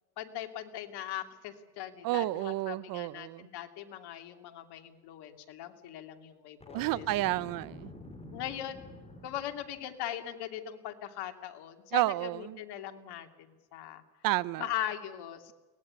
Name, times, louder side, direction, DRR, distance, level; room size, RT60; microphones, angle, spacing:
voice 1, 0.2-7.1 8.3-8.9 9.2-14.0 14.6-15.5, left 11 dB, 55° left, 7 dB, 2.9 m, -40 dB
voice 2, 2.0-3.5 6.7-7.9 11.9-12.6 14.2-14.7, right 17 dB, 50° right, 21 dB, 0.7 m, -31 dB
Boom, 6.6-9.8, left 2 dB, 15° left, 5.3 m, -48 dB
23.5 x 19.0 x 9.8 m, 1.2 s
supercardioid pair, 105°, 46 cm